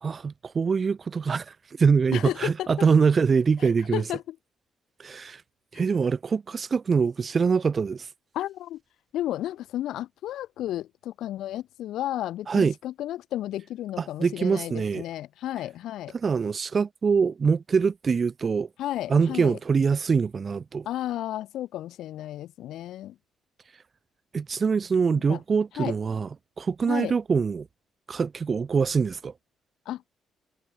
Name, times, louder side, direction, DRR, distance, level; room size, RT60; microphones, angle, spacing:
voice 1, 0.0-4.0 5.0-5.4 5.7-8.1 12.5-12.7 14.0-15.0 16.1-18.7 19.1-20.9 24.3-26.3 26.6-27.7 28.1-29.3, right 5 dB, 40° right, 1.9 m, -24 dB
voice 2, 2.1-2.7 3.6-4.4 8.3-8.8 9.1-16.1 18.8-19.6 20.9-23.1 25.1-25.4 25.8-25.9 26.9-27.1 29.9-30.0, left 13 dB, 80° left, 2.5 m, -33 dB
cardioid pair, 90°, 0 cm